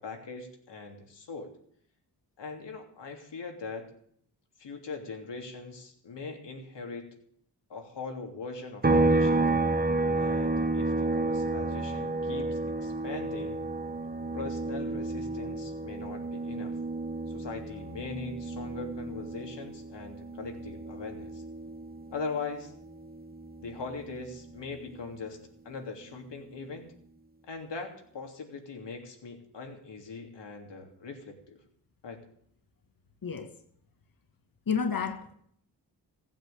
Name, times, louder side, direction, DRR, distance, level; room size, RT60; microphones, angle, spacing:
voice 1, 0.0-1.5 2.4-3.9 4.6-7.2 7.7-9.4 10.2-13.6 14.3-16.8 17.3-21.4 22.1-22.7 23.6-25.4 25.6-26.9 27.5-31.6 32.0-32.2, left 4 dB, 75° left, 3.2 m, -41 dB
sound 1, 8.8-22.4 22.7-24.9, right 2 dB, 20° right, 1.3 m, -31 dB
voice 2, 34.7-35.3, left 6 dB, 50° left, 2.0 m, -30 dB
16.0 x 9.3 x 8.6 m
cardioid pair, 55°, 43 cm